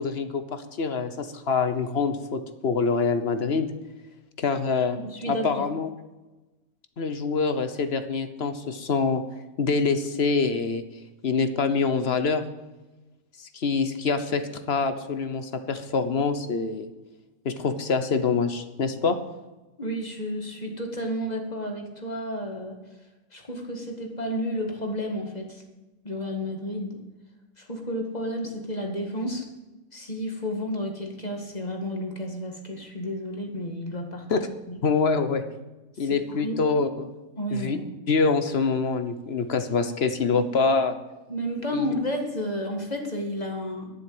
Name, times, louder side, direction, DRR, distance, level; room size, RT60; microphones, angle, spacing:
voice 1, 0.0-3.7 4.4-5.0 5.3-5.9 7.0-9.2 9.6-10.8 11.2-12.4 13.5-16.9 17.4-19.2 34.3-34.4 34.8-35.4 36.0-37.1 37.5-37.8 38.1-41.0 41.7-41.9, left 4 dB, 50° left, 9 dB, 1.1 m, -25 dB
voice 2, 5.0-5.6 19.8-22.8 23.3-25.6 26.0-27.0 27.6-29.5 29.9-34.3 34.7-34.8 36.0-36.8 37.4-37.8 41.3-43.9, equal, 30° left, 2 dB, 1.9 m, -31 dB
12.0 x 7.6 x 7.8 m, 1.1 s
omnidirectional pair, 1.4 m